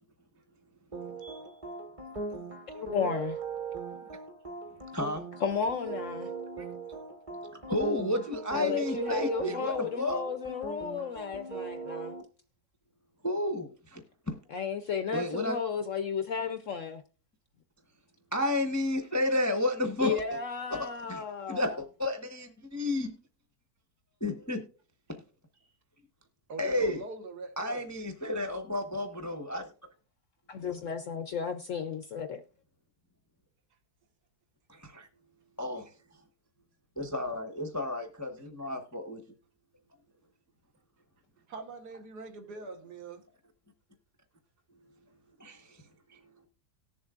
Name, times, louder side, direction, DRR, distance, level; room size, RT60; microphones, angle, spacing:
sound 1, 0.9-12.2, right 4 dB, 20° right, 1.1 m, -39 dB
voice 1, 1.2-1.6 26.5-27.9 41.5-43.2, right 3 dB, 70° right, 1.7 m, -43 dB
voice 2, 2.7-3.4 5.4-6.3 8.5-12.2 14.5-17.0 20.0-21.7 30.5-32.4, left 6 dB, 65° left, 0.8 m, -33 dB
voice 3, 4.9-5.2 6.6-6.7 7.5-10.2 13.2-14.0 15.1-15.6 18.3-20.4 20.7-21.2 21.5-23.1 24.2-24.6 26.6-27.0 27.6-29.7 34.7-35.1 35.6-35.9 37.0-39.2 45.4-45.6 46.1-46.3, left 1 dB, 15° left, 0.6 m, -32 dB
18.5 x 7.1 x 2.4 m
omnidirectional pair, 1.8 m